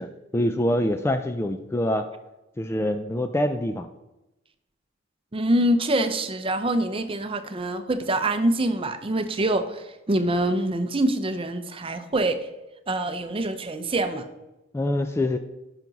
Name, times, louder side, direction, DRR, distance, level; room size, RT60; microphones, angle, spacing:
voice 1, 0.0-2.1 2.6-3.9 14.7-15.4, left 1 dB, 10° left, 8 dB, 0.3 m, -25 dB
voice 2, 5.3-12.5 12.9-14.3, right 1 dB, 25° right, 9 dB, 0.6 m, -25 dB
10.5 x 5.9 x 4.0 m, 0.98 s
head